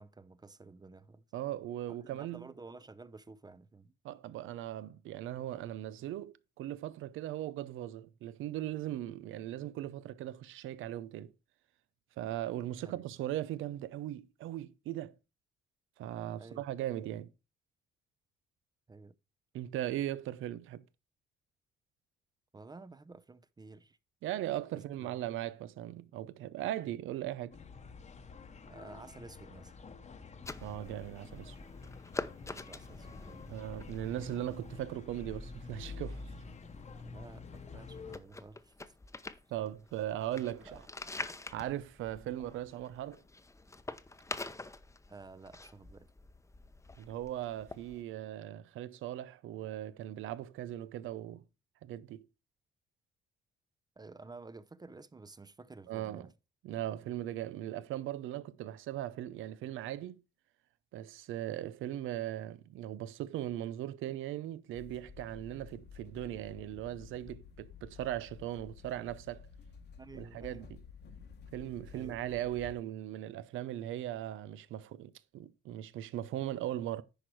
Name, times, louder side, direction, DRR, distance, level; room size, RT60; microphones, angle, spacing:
voice 1, 0.0-1.2 1.9-3.9 12.8-13.0 16.4-16.6 16.9-17.0 18.9-19.1 22.5-24.0 25.0-25.5 28.6-29.7 32.4-33.6 37.0-38.8 40.7-40.8 45.1-46.1 54.0-56.3 70.0-70.7 71.9-72.2, right 3 dB, 20° right, 0.6 m, -52 dB
voice 2, 1.3-2.5 4.0-11.3 12.2-15.1 16.0-17.3 19.5-20.8 24.2-27.6 30.6-31.6 33.5-36.2 39.5-40.8 41.5-43.2 47.0-51.4 51.8-52.2 55.9-56.3 56.6-60.2 60.9-69.5 70.1-70.8 71.5-77.0, right 13 dB, 85° right, 0.7 m, -39 dB
sound 1, 27.5-38.2, left 4 dB, 35° left, 1.0 m, -48 dB
sound 2, 30.4-48.0, left 2 dB, 15° left, 0.8 m, -47 dB
sound 3, 64.7-72.7, left 6 dB, 55° left, 1.2 m, -52 dB
10.0 x 4.8 x 4.6 m
cardioid pair, 90°, 20 cm